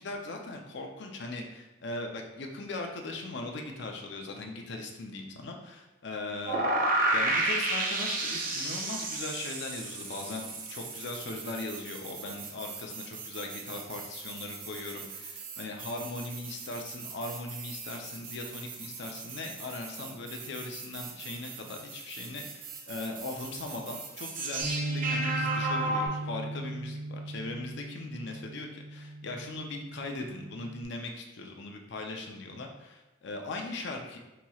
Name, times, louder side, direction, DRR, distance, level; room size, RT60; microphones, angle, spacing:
voice 1, 0.0-6.6 7.1-34.2, left 2 dB, 65° left, 2 dB, 0.5 m, -39 dB
sound 1, 6.5-26.1, right 2 dB, 45° right, 0.5 m, -34 dB
Bass guitar, 24.6-30.9, right 1 dB, 90° right, 0.7 m, -37 dB
4.1 x 2.9 x 2.3 m, 1.0 s
head